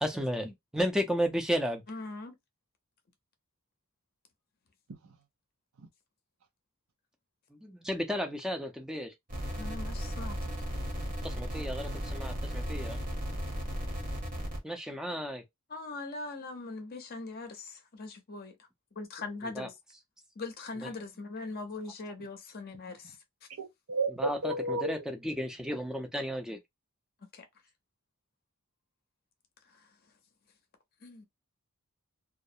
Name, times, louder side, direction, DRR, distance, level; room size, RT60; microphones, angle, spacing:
voice 1, 0.0-1.8 7.5-9.1 11.2-13.0 14.6-15.4 19.4-19.7 20.8-20.9 24.1-26.6, equal, 5° right, 0.4 m, -33 dB
voice 2, 1.9-2.4 9.5-10.4 15.7-18.6 19.0-19.8 20.4-23.2 27.3-27.4 29.7-29.9 31.0-31.2, left 3 dB, 45° left, 0.6 m, -41 dB
sound 1, 9.3-14.6, equal, 40° right, 0.9 m, -35 dB
voice 3, 23.6-24.9, right 2 dB, 70° right, 0.6 m, -32 dB
2.3 x 2.0 x 2.6 m
head